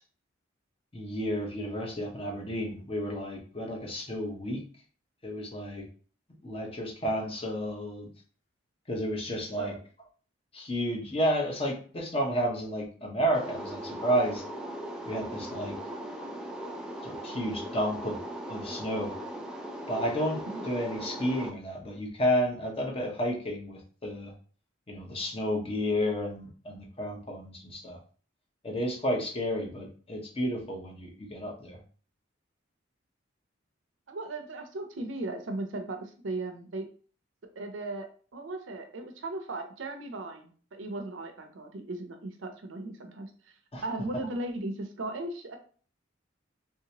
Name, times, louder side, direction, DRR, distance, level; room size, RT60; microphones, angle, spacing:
voice 1, 0.9-4.6 5.2-5.9 6.4-8.1 8.9-9.7 10.5-14.4 15.1-15.8 17.0-18.2 18.5-19.1 19.9-24.3 24.9-28.0 28.6-31.8 43.7-43.8, equal, 30° left, 0 dB, 0.8 m, -31 dB
voice 2, 9.5-9.8 20.5-20.7 34.1-36.9 37.6-43.3 43.8-45.6, right 2 dB, 75° right, 5 dB, 0.6 m, -37 dB
sound 1, 13.3-21.5, right 1 dB, 5° right, 0.4 m, -39 dB
3.2 x 2.8 x 2.8 m, 0.41 s
head